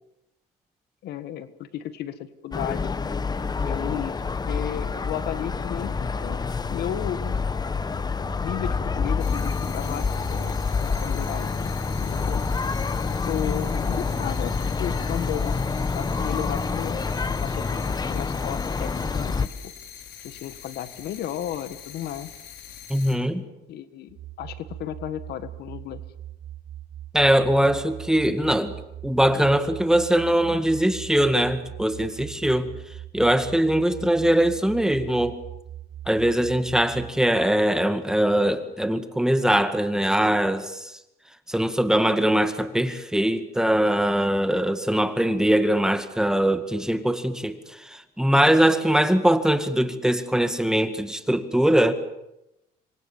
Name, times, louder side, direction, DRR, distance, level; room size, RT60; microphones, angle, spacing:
voice 1, 1.0-2.9 3.6-4.1 4.5-6.4 6.7-7.4 8.4-11.5 11.9-12.5 13.2-14.5 14.8-17.0 17.4-19.5 20.2-22.3 23.7-26.0, left 10 dB, 75° left, 12 dB, 1.7 m, -34 dB
sound 1, 2.5-19.5, left 4 dB, 25° left, 1.2 m, -27 dB
sound 2, 9.2-23.2, left 9 dB, 90° left, 4.4 m, -44 dB
voice 2, 22.9-23.4 27.1-28.7 29.0-32.7 33.1-35.3 36.1-40.9 41.5-47.6 47.9-51.9, right 1 dB, 5° right, 9 dB, 2.1 m, -21 dB
sound 3, 24.1-37.1, right 12 dB, 75° right, 5.0 m, -41 dB
27.0 x 23.5 x 7.4 m, 0.88 s
cardioid pair, 110°, 17 cm